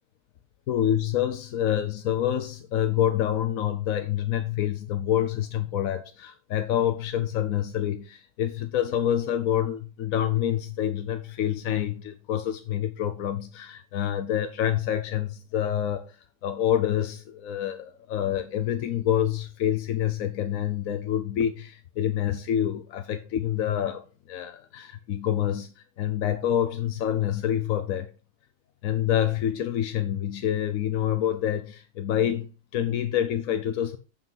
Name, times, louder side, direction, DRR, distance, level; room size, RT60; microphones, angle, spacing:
voice 1, 0.7-16.2 16.4-28.1 28.8-34.0, left 10 dB, 85° left, 1.2 m, -27 dB
8.3 x 5.5 x 5.4 m
omnidirectional pair, 1.4 m